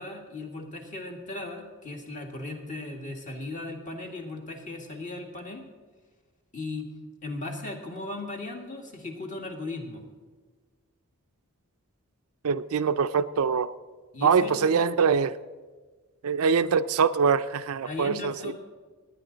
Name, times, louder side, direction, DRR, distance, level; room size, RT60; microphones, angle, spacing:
voice 1, 0.0-5.6 6.5-6.9 7.2-10.0 14.1-14.7 17.8-18.5, left 2 dB, 35° left, 2 dB, 1.8 m, -37 dB
voice 2, 12.4-13.7 14.2-15.4 16.2-18.5, right 6 dB, 75° right, 12 dB, 0.5 m, -24 dB
20.0 x 9.7 x 3.9 m, 1.4 s
head